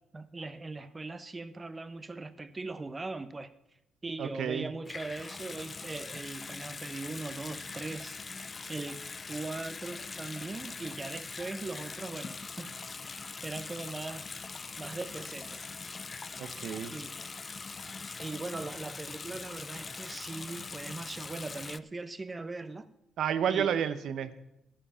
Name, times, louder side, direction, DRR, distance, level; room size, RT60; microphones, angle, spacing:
voice 1, 0.1-3.5 4.0-8.2 8.7-9.0 9.3-12.8 13.4-14.3 14.8-15.6 16.9-17.1 18.2-22.9 23.5-23.7, right 3 dB, 25° right, 0.9 m, -40 dB
voice 2, 4.2-4.7 16.4-16.9 17.8-17.9 23.2-24.3, right 8 dB, 70° right, 0.9 m, -31 dB
Water tap faucet / Sink (filling or washing) / Bathtub (filling or washing), 4.8-21.8, left 4 dB, 35° left, 0.4 m, -42 dB
12.5 x 10.0 x 5.8 m
cardioid pair, 90°, 0 cm